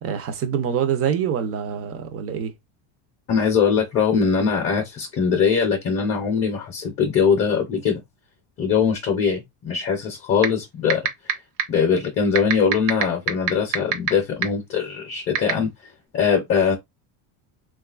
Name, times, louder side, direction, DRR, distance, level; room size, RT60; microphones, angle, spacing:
voice 1, 0.0-2.5, right 8 dB, 30° right, 0.5 m, -25 dB
voice 2, 3.3-8.0 8.6-11.4 11.7-15.7 16.1-16.8, left 6 dB, 30° left, 0.6 m, -21 dB
sound 1, 10.4-10.5 10.9-11.3 11.6-11.7 12.3-14.1 14.4-14.5 15.3-15.5, right 9 dB, 80° right, 0.8 m, -18 dB
3.6 x 2.4 x 2.3 m
cardioid pair, 160°, 47 cm